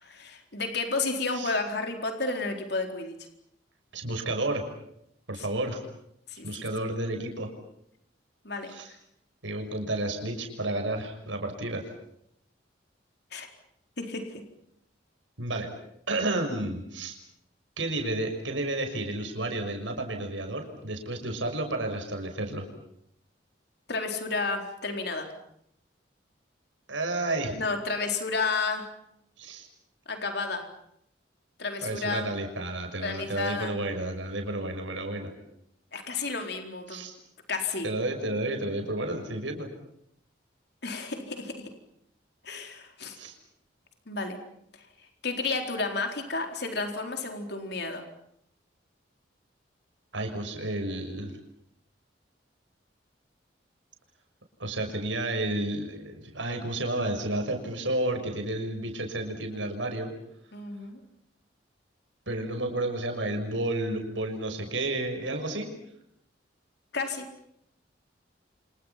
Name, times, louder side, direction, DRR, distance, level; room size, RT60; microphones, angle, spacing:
voice 1, 0.0-3.1 6.3-6.5 8.4-8.7 13.3-13.5 14.0-14.4 23.9-25.3 27.5-28.9 30.1-30.7 31.6-32.3 33.0-33.7 35.9-37.1 37.5-37.9 40.8-41.7 42.4-43.2 44.1-44.4 45.2-48.1 60.5-61.0 66.9-67.3, left 3 dB, 60° left, 5 dB, 4.2 m, -31 dB
voice 2, 3.9-4.6 5.3-5.8 6.4-7.5 8.7-8.9 9.4-11.8 15.4-15.7 16.1-17.2 17.8-22.7 26.9-27.6 29.4-29.7 31.8-35.3 36.9-37.1 37.8-39.7 43.1-43.3 50.1-51.3 54.6-60.1 62.3-65.7, right 2 dB, 90° right, 4 dB, 6.3 m, -31 dB
29.5 x 27.0 x 5.9 m, 0.75 s
head